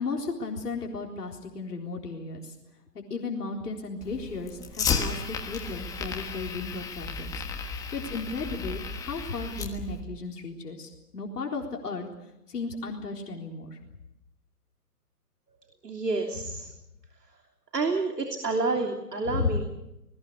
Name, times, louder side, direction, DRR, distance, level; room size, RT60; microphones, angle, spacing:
voice 1, 0.0-2.6 2.9-12.1 12.5-13.8 19.3-19.6, left 4 dB, 75° left, 1 dB, 4.1 m, -34 dB
Fire, 4.0-10.0, left 5 dB, 5° left, 1.4 m, -33 dB
voice 2, 15.8-16.7 17.7-19.7, right 3 dB, 90° right, 4 dB, 3.3 m, -29 dB
27.5 x 20.5 x 6.7 m, 0.91 s
hypercardioid pair, 145°, 47 cm